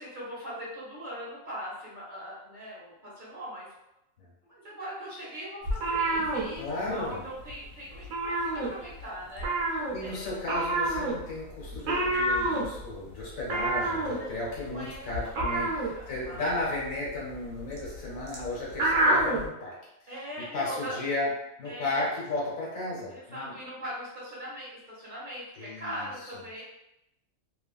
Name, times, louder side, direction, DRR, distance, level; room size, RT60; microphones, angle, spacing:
voice 1, 0.0-3.7 4.5-9.5 10.0-10.4 14.1-15.1 15.5-15.7 15.9-16.5 20.1-20.9 21.6-22.0 23.1-26.6, equal, 40° right, -8 dB, 1.1 m, -41 dB
sound 1, 5.6-7.2 7.4-7.7 7.9-9.0 9.4-19.5, right 2 dB, 75° right, 1.0 m, -28 dB
voice 2, 6.6-7.2 9.9-19.7 20.5-21.3 21.6-23.6 25.6-26.1, left 2 dB, 75° left, -5 dB, 1.4 m, -34 dB
3.0 x 2.3 x 2.3 m, 0.90 s
omnidirectional pair, 1.4 m